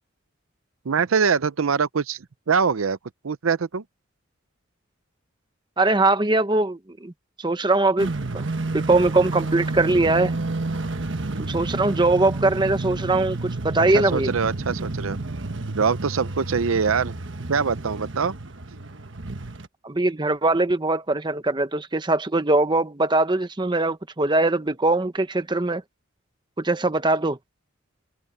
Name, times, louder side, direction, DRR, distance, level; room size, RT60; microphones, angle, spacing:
voice 1, 0.8-3.0 3.2-3.8 13.9-15.2 15.7-17.1 17.5-18.3, right 5 dB, 80° right, 0.6 m, -23 dB
voice 2, 5.8-7.1 7.4-8.4 8.7-10.3 11.5-14.3 19.8-25.8 26.6-27.4, right 2 dB, 20° right, 0.8 m, -21 dB
sound 1, 8.0-19.7, right 2 dB, 60° right, 1.4 m, -30 dB
head